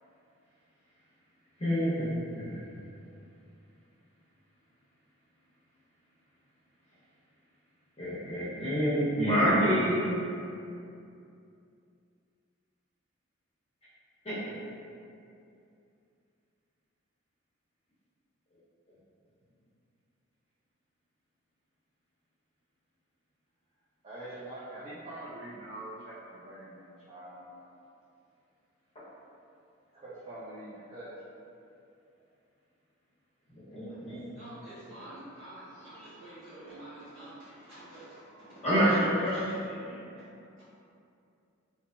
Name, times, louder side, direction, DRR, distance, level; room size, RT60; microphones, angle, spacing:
voice 1, 1.6-2.7 8.0-10.1 14.2-14.4 33.5-34.2 38.6-39.4, equal, 30° left, -10 dB, 0.7 m, -27 dB
voice 2, 24.0-27.8 29.9-31.1, right 1 dB, 30° right, -12 dB, 0.4 m, -44 dB
voice 3, 33.7-38.8 39.2-40.6, right 1 dB, 65° right, -11 dB, 1.0 m, -49 dB
2.7 x 2.3 x 2.3 m, 2.5 s
head